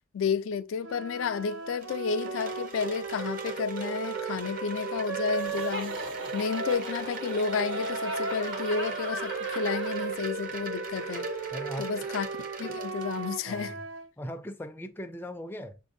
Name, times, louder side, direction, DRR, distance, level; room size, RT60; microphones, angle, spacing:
voice 1, 0.1-6.0 6.3-11.3 11.8-13.7, left 5 dB, 90° left, 0.3 m, -31 dB
sound 1, 0.8-6.9 7.4-14.1, right 5 dB, 90° right, 0.4 m, -37 dB
Wind chime, 1.4-13.6, right 2 dB, 45° right, 0.6 m, -38 dB
Laughter, 5.3-10.2, right 1 dB, 75° right, 1.3 m, -39 dB
voice 2, 11.5-12.1 13.5-13.9 14.2-15.8, equal, 10° left, 0.3 m, -39 dB
7.0 x 2.6 x 2.5 m
head